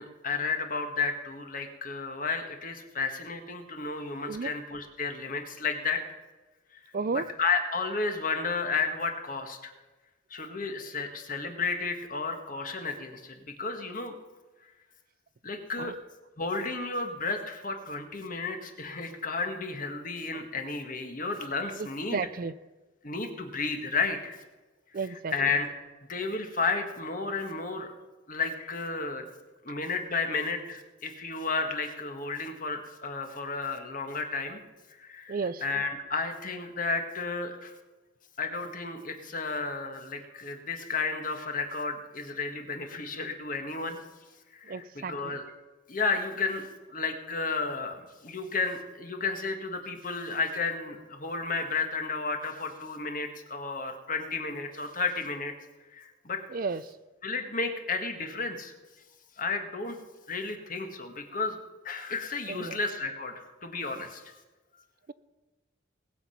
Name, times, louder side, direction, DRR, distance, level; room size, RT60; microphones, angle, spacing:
voice 1, 0.0-6.0 7.1-9.7 10.3-14.1 15.4-15.9 16.4-22.2 23.0-24.4 25.0-25.7 26.1-27.9 28.3-29.2 29.6-34.6 35.0-37.7 38.4-44.0 44.5-45.5 45.9-55.5 55.9-56.4 57.2-58.7 59.4-60.0 60.3-61.6 61.8-63.3 63.6-64.3, left 4 dB, 40° left, 5 dB, 1.6 m, -32 dB
voice 2, 6.9-7.2 15.8-15.9 22.1-22.5 24.9-25.3 35.3-35.6 44.7-45.4 56.5-56.8 62.5-62.8, right 4 dB, 45° right, 16 dB, 0.4 m, -32 dB
19.5 x 7.7 x 5.7 m, 1.2 s
head